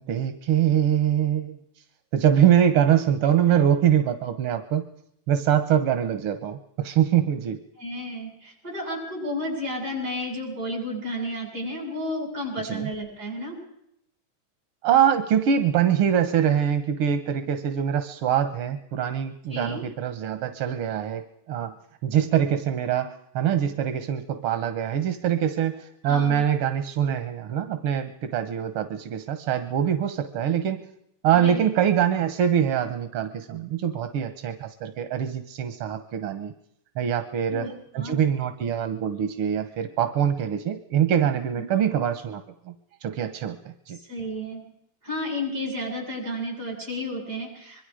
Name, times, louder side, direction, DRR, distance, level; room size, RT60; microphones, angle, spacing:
voice 1, 0.0-1.6 2.1-4.9 5.3-7.6 12.6-12.9 14.8-21.7 22.0-30.9 31.2-36.5 37.0-37.7 37.9-42.7 43.0-44.0, right 9 dB, 85° right, 9 dB, 2.0 m, -24 dB
voice 2, 7.8-13.6 19.5-19.8 26.0-26.4 31.3-31.6 37.5-37.7 38.0-38.2 41.6-41.7 44.1-44.6 45.0-47.8, left 1 dB, 45° right, 0 dB, 8.6 m, -32 dB
26.0 x 22.0 x 5.0 m, 0.75 s
omnidirectional pair, 2.4 m